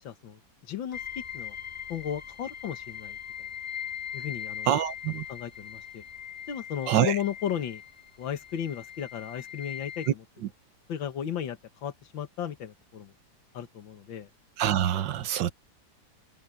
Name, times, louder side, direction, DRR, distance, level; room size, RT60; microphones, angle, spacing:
voice 1, 0.0-1.6 1.9-3.2 4.1-4.7 5.3-6.0 6.5-7.8 8.2-10.1 10.9-13.1 13.5-14.3, left 9 dB, 80° left, 2.1 m, -35 dB
sound 1, 0.9-10.1, left 9 dB, 25° right, 6.3 m, -40 dB
voice 2, 4.7-5.3 6.9-7.2 14.6-15.5, right 11 dB, 70° right, 1.6 m, -25 dB
open air
omnidirectional pair, 2.1 m